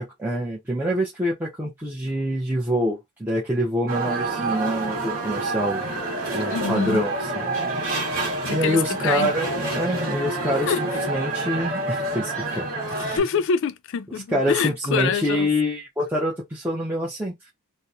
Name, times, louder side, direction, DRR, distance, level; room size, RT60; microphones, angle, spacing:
voice 1, 0.0-5.8 6.3-7.2 7.7-8.0 8.5-9.5 9.7-12.7 14.3-17.3, equal, 10° right, 0.6 m, -26 dB
sound 1, 3.9-13.2, right 2 dB, 40° right, 1.1 m, -27 dB
voice 2, 6.5-7.0 8.4-9.3 10.7-10.8 12.9-15.5, left 6 dB, 55° left, 0.3 m, -26 dB
2.8 x 2.0 x 2.4 m
head